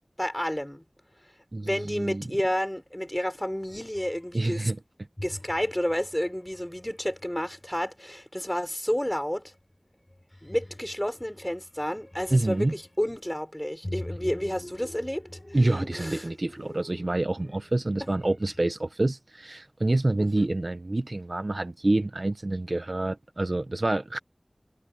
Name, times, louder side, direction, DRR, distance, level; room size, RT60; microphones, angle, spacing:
voice 1, 0.2-0.8 1.6-4.7 5.2-9.5 10.4-16.3 20.2-20.5, equal, 15° left, 6.1 m, -31 dB
voice 2, 1.5-2.2 4.3-4.8 12.3-12.7 15.5-24.2, right 2 dB, 60° right, 0.9 m, -27 dB
sound 1, 3.5-4.4 5.2-7.8 9.5-9.8 10.1-13.1 13.8-18.6, left 1 dB, 30° left, 4.2 m, -45 dB
wide cardioid pair, 45°, 0 cm